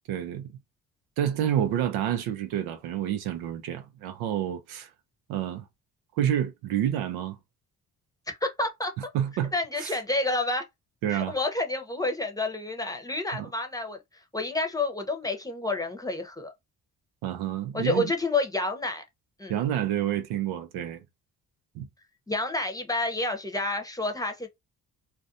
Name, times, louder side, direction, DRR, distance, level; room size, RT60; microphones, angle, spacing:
voice 1, 0.1-0.5 1.2-4.9 5.3-5.6 6.2-7.4 9.1-9.5 9.8-10.0 11.0-11.4 13.3-13.5 17.2-18.1 19.5-21.0 21.7-21.9, right 10 dB, 90° right, 0.6 m, -28 dB
voice 2, 8.3-8.9 9.5-10.6 11.1-14.0 14.3-16.5 17.7-19.0 19.4-19.5 22.3-24.5, left 2 dB, 10° left, 0.7 m, -29 dB
2.5 x 2.2 x 2.6 m
supercardioid pair, 65°, 37 cm